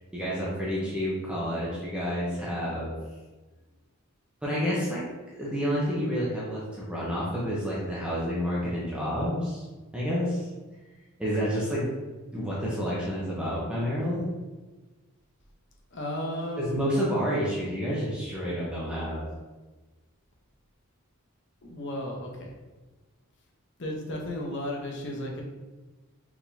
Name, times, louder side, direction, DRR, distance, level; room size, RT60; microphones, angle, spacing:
voice 1, 0.1-3.0 4.4-5.0 5.3-9.6 9.9-10.5 11.2-11.9 12.3-14.3 16.6-19.2, equal, 5° right, -7 dB, 0.8 m, -29 dB
voice 2, 15.9-16.8 21.6-22.5 23.8-25.4, left 1 dB, 55° left, 0 dB, 0.8 m, -34 dB
4.7 x 3.8 x 2.7 m, 1.2 s
head